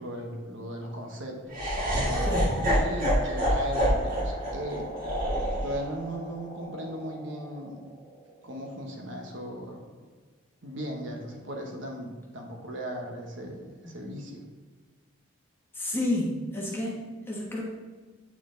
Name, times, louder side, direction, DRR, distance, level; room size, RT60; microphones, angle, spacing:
voice 1, 0.0-4.9 5.6-7.8 8.4-9.9 10.6-14.4, equal, 60° right, 1 dB, 1.1 m, -37 dB
Laughter, 1.5-7.7, equal, 40° right, 2.0 m, -28 dB
voice 2, 2.2-2.6 13.8-13.9 15.7-17.6, left 1 dB, 10° left, -3 dB, 1.2 m, -31 dB
8.6 x 4.5 x 3.8 m, 1.4 s
head